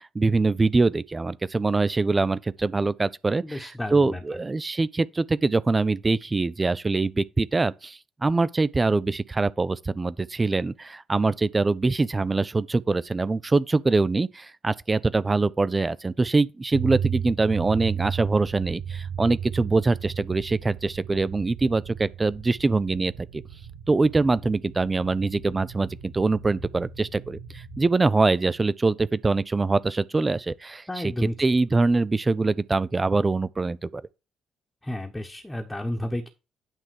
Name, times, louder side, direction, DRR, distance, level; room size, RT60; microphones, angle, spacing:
voice 1, 0.0-23.4 23.9-34.0, right 3 dB, 25° right, 0.4 m, -24 dB
voice 2, 3.4-4.2 30.9-31.3 34.8-36.3, left 1 dB, 10° left, 1.2 m, -31 dB
sound 1, 16.7-27.9, right 8 dB, 70° right, 3.5 m, -35 dB
9.0 x 3.5 x 6.3 m
figure-of-eight pair, 45°, 0 cm